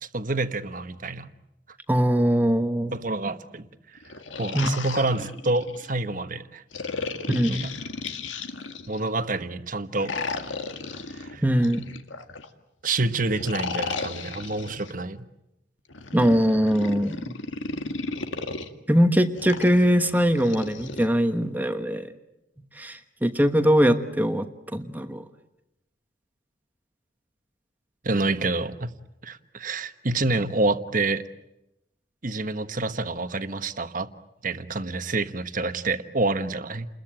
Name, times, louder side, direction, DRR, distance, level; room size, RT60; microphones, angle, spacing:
voice 1, 0.0-1.3 2.9-3.7 4.4-6.6 7.5-7.7 8.9-10.1 11.1-11.4 12.8-15.3 28.0-28.9 29.2-31.2 32.2-34.1 34.4-36.9, right 2 dB, 45° right, 1.3 m, -27 dB
voice 2, 1.9-2.9 4.5-4.7 7.3-7.7 11.4-11.8 16.1-17.3 18.9-22.1 22.7-25.2, equal, 10° right, 1.2 m, -22 dB
sound 1, 4.0-5.9 6.7-9.1 9.9-12.5 13.3-14.9 15.9-18.7 19.4-21.0, left 4 dB, 85° left, 1.9 m, -34 dB
30.0 x 21.5 x 9.0 m
head